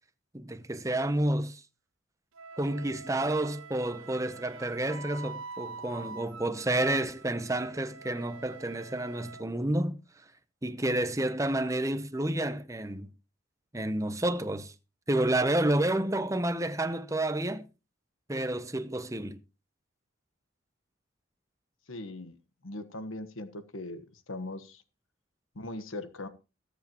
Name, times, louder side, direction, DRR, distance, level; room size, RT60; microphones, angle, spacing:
voice 1, 0.3-1.6 2.6-10.0 10.6-13.1 13.7-14.7 15.1-17.6 18.3-19.4, right 1 dB, 15° right, 0.8 m, -30 dB
Wind instrument woodwind instrument, 2.3-9.4, right 4 dB, 85° right, 0.8 m, -45 dB
voice 2, 21.9-22.3 22.6-24.8 25.5-26.3, left 2 dB, 90° left, 1.3 m, -40 dB
21.0 x 8.3 x 3.0 m
head